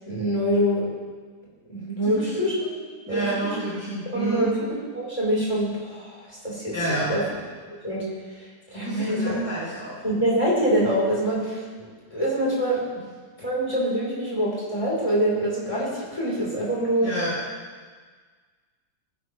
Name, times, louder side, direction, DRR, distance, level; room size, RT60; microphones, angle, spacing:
voice 1, 0.1-0.9 1.7-2.5 3.1-3.6 4.1-4.5 4.9-6.7 7.1-7.2 7.8-8.0 8.4-9.4 10.0-12.8 13.4-17.1, equal, 20° left, -7 dB, 4.3 m, -25 dB
voice 2, 2.0-2.5 3.1-4.5 6.7-7.1 8.8-10.0 17.0-17.4, right 2 dB, 10° right, -10 dB, 3.2 m, -29 dB
19.0 x 11.0 x 3.3 m, 1.5 s
omnidirectional pair, 1.9 m